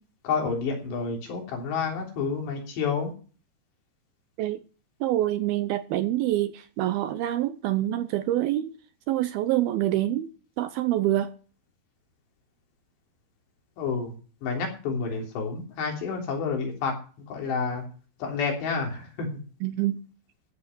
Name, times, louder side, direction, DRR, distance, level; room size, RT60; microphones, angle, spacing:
voice 1, 0.2-3.1 13.8-14.2 14.4-16.9 17.3-17.9 18.2-19.3, left 5 dB, 80° left, 5.5 m, -29 dB
voice 2, 5.0-8.7 9.1-10.3 10.6-11.3 19.6-20.0, right 14 dB, 80° right, 2.3 m, -26 dB
14.0 x 8.2 x 6.0 m
omnidirectional pair, 4.9 m